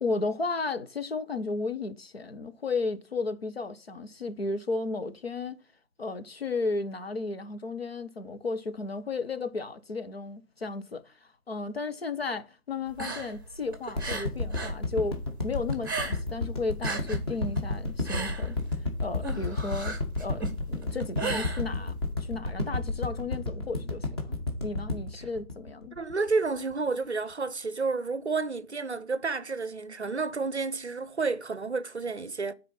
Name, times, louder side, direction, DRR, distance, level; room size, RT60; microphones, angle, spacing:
voice 1, 0.0-5.6 6.0-11.1 11.5-18.6 19.0-24.2 24.6-26.0, left 3 dB, 45° left, 1.0 m, -34 dB
sound 1, 12.9-14.8 15.1-16.4 16.7-22.1, right 3 dB, 15° right, 1.0 m, -36 dB
sound 2, 14.0-26.3 26.7-26.8, left 2 dB, 15° left, 1.3 m, -31 dB
voice 2, 26.0-32.5, right 4 dB, 50° right, 0.7 m, -30 dB
9.9 x 4.2 x 5.6 m
figure-of-eight pair, 155°, 44 cm